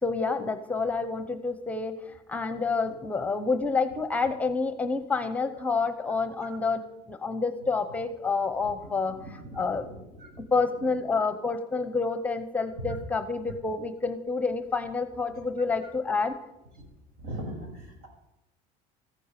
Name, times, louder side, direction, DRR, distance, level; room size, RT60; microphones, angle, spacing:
voice 1, 0.0-6.8 7.1-9.2 9.5-9.9 10.4-16.4, left 4 dB, 10° left, 10 dB, 0.8 m, -28 dB
voice 2, 8.6-10.5 10.7-10.9 12.7-13.0 15.8-15.9 17.2-18.1, right 1 dB, 75° right, 2 dB, 6.4 m, -41 dB
14.5 x 10.5 x 6.7 m, 0.91 s
cardioid pair, 160°, 15 cm